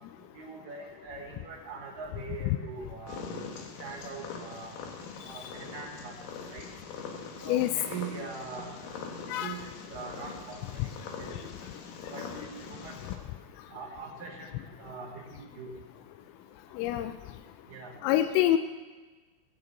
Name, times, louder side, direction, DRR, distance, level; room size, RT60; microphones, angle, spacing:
voice 1, 0.3-3.3 3.8-4.8 5.2-6.2 6.5-6.7 7.4-8.8 9.2-10.6 11.2-11.5 12.1-13.0 13.7-14.5 14.8-15.7 17.7-17.9, right 4 dB, 70° right, 0 dB, 2.1 m, -42 dB
Purr, 3.1-13.2, left 5 dB, 75° left, 2.1 m, -43 dB
voice 2, 16.8-17.1 18.0-18.6, left 13 dB, 90° left, 9 dB, 3.2 m, -25 dB
18.0 x 6.7 x 8.0 m, 1.3 s
omnidirectional pair, 5.7 m